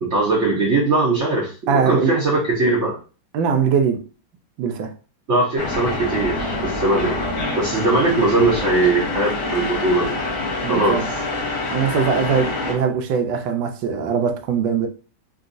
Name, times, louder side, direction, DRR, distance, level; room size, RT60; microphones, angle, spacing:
voice 1, 0.0-3.0 5.3-7.2 7.5-10.1 10.7-11.0, right 2 dB, 60° right, 0.7 m, -20 dB
voice 2, 1.7-2.2 3.3-4.0 4.6-4.9 10.6-11.1 11.7-14.9, right 6 dB, 75° right, 1.3 m, -21 dB
sound 1, 5.6-12.8, left 2 dB, 50° left, 1.0 m, -26 dB
3.8 x 2.3 x 2.5 m
omnidirectional pair, 2.2 m